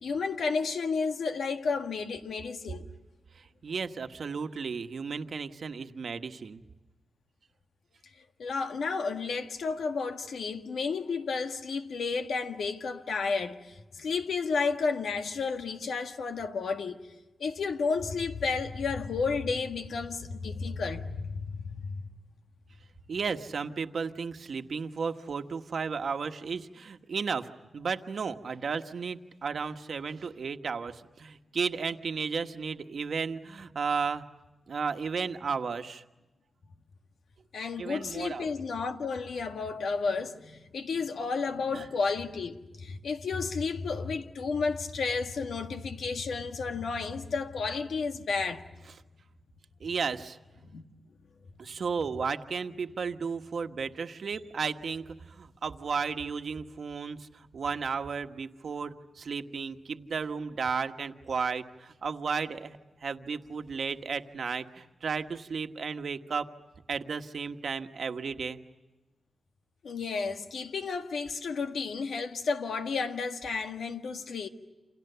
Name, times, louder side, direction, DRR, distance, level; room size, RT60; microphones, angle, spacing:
voice 1, 0.0-2.9 8.4-17.0 17.4-22.0 37.5-48.6 50.7-50.8 69.8-74.5, left 4 dB, 90° left, 1.7 m, -32 dB
voice 2, 3.6-6.6 23.1-34.2 34.7-36.0 37.8-38.5 41.7-41.9 49.8-50.4 51.6-66.5 66.9-68.6, right 5 dB, 60° right, 1.3 m, -34 dB
29.0 x 28.0 x 6.9 m
wide cardioid pair, 140°, 0 cm